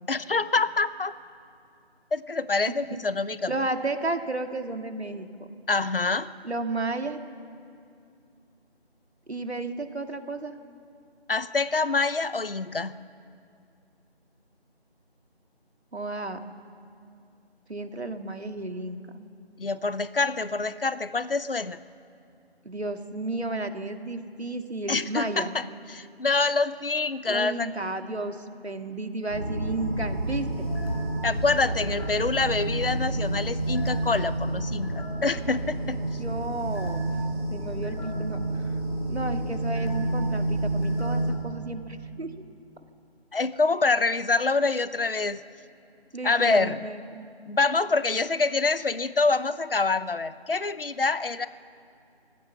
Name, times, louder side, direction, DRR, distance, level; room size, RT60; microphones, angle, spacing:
voice 1, 0.1-1.1 2.1-3.5 5.7-6.3 11.3-13.0 19.6-21.8 24.9-27.7 31.2-36.0 43.3-45.4 46.2-46.7 47.5-51.5, left 3 dB, 60° left, 16 dB, 0.8 m, -26 dB
voice 2, 3.5-5.3 6.4-7.2 9.3-10.6 15.9-16.4 17.7-19.0 22.6-25.5 27.2-30.7 36.2-37.1 37.5-38.7 39.1-42.4 46.1-47.2, right 2 dB, 80° right, 6 dB, 2.2 m, -32 dB
sound 1, 29.3-41.3, right 1 dB, 5° left, 2.8 m, -29 dB
24.0 x 16.0 x 7.1 m, 2.5 s
figure-of-eight pair, 180°, 32 cm